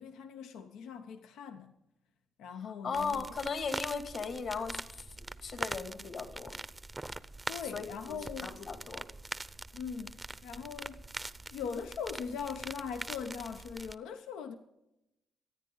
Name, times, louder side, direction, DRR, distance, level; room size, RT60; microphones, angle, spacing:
voice 1, 0.0-1.7 2.4-3.2 7.5-8.6 9.7-11.0 11.5-14.5, left 6 dB, 85° left, 0.9 m, -41 dB
voice 2, 2.6-5.1 5.4-6.6 7.7-9.0, left 5 dB, 60° left, 2.4 m, -37 dB
sound 1, 2.9-13.9, right 2 dB, 15° right, 0.6 m, -43 dB
25.0 x 9.5 x 3.9 m
cardioid pair, 90°, 0 cm